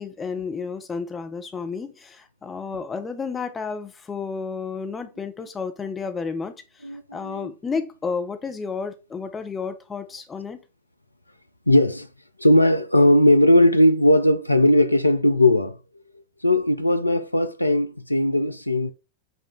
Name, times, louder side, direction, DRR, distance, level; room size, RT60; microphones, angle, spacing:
voice 1, 0.0-10.6, left 5 dB, 15° left, 0.5 m, -31 dB
voice 2, 6.8-7.5 11.7-12.1 12.4-15.8 16.4-18.9, left 1 dB, 85° left, 0.3 m, -18 dB
5.2 x 2.3 x 3.6 m
figure-of-eight pair, 90°, 0 cm